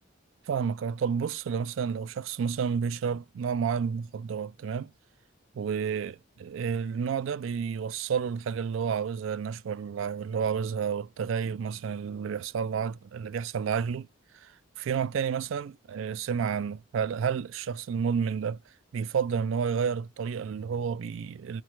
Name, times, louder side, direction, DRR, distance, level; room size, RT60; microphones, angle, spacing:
voice 1, 0.5-4.9 5.6-14.1 14.3-14.5 14.8-18.6 18.9-21.6, right 6 dB, 75° right, 0.3 m, -30 dB
3.2 x 2.3 x 3.0 m
head